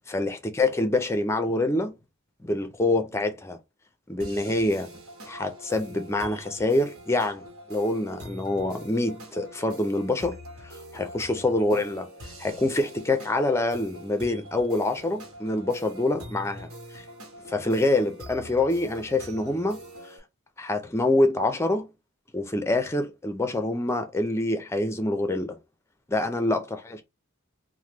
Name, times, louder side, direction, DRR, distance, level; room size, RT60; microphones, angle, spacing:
voice 1, 0.1-1.9 2.4-3.6 4.1-4.9 5.3-7.4 7.7-10.4 10.6-12.1 12.4-16.7 16.9-17.0 17.5-19.8 20.6-21.9 22.3-25.6 26.1-27.0, left 2 dB, 10° left, 0.4 m, -26 dB
sound 1, 4.2-20.2, equal, 75° right, 1.1 m, -43 dB
3.0 x 2.1 x 3.3 m
head